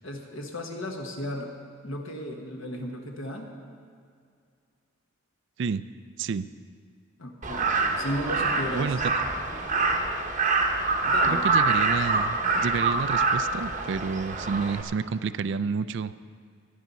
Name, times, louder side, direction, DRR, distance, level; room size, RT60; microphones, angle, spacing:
voice 1, 0.0-1.5 1.8-3.5 7.2-8.9 11.0-11.4, equal, 65° left, 1 dB, 1.2 m, -35 dB
Crow, 7.4-14.8, right 3 dB, 35° right, 0.9 m, -25 dB
voice 2, 8.7-9.1 11.3-16.1, right 5 dB, 55° right, 13 dB, 0.3 m, -29 dB
16.5 x 10.5 x 4.1 m, 2.2 s
head